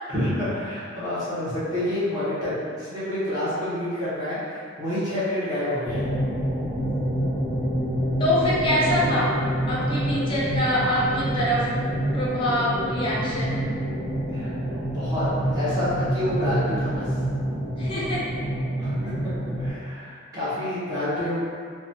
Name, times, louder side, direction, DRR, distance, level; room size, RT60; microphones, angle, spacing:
voice 1, 0.1-6.1 12.6-12.9 14.3-15.2 15.5-17.1 18.8-19.0 19.6-21.4, left 1 dB, 20° right, -13 dB, 0.7 m, -28 dB
sound 1, 5.8-19.7, right 1 dB, 70° right, 0.7 m, -27 dB
voice 2, 8.2-9.4 9.7-11.7 12.1-13.8 17.8-18.4, equal, 25° left, -6 dB, 0.4 m, -25 dB
3.1 x 2.1 x 2.7 m, 2.1 s
head